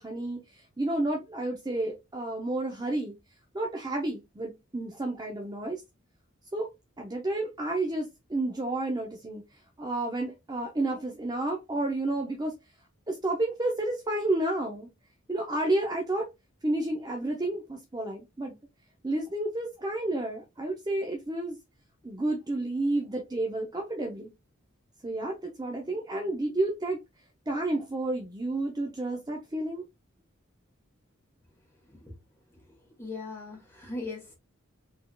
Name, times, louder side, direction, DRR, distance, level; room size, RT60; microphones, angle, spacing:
voice 1, 0.0-3.1 3.5-5.8 6.5-6.7 7.0-9.4 9.8-12.5 13.1-14.9 15.3-16.3 16.6-18.6 19.0-21.6 22.0-24.3 25.0-27.0 27.5-29.8, right 2 dB, 20° right, 0.6 m, -31 dB
voice 2, 31.8-32.1 32.5-34.3, left 3 dB, 10° left, 1.9 m, -40 dB
4.1 x 3.5 x 2.3 m
head